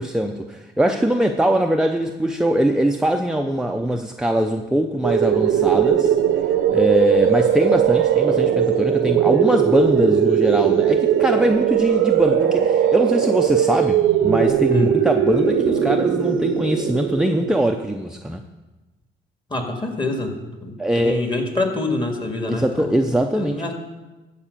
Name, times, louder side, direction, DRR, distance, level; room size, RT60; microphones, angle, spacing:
voice 1, 0.0-6.1 6.7-18.4 20.8-21.2 22.5-23.6, right 1 dB, 5° right, 4 dB, 0.6 m, -21 dB
sound 1, 5.0-17.8, right 9 dB, 90° right, 0.9 m, -19 dB
voice 2, 19.5-23.1 23.4-23.7, left 2 dB, 25° left, 3 dB, 2.0 m, -26 dB
13.5 x 4.9 x 6.8 m, 1.2 s
cardioid pair, 90°, 20 cm